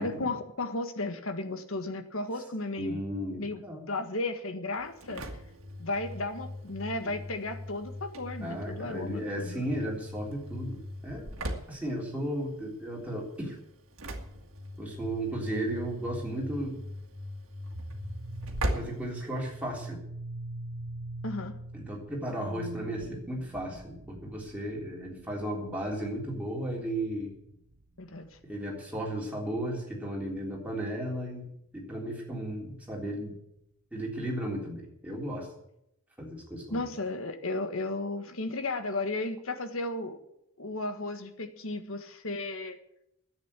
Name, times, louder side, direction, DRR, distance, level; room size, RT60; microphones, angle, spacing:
voice 1, 0.0-3.0 3.4-3.6 3.9-5.2 5.8-9.7 21.2-21.6 28.0-28.3 36.7-40.2 40.6-42.8, left 2 dB, 70° left, 8 dB, 1.6 m, -34 dB
voice 2, 2.8-3.8 7.0-7.1 8.4-13.6 14.8-16.8 18.7-20.0 21.7-27.3 28.5-33.4 33.9-35.5 36.2-36.9, right 1 dB, 5° right, -3 dB, 3.5 m, -35 dB
Engine / Slam, 4.8-19.9, equal, 65° right, 1.9 m, -40 dB
sound 1, 17.7-29.0, right 1 dB, 40° right, 0.8 m, -44 dB
10.5 x 8.8 x 9.8 m, 0.79 s
head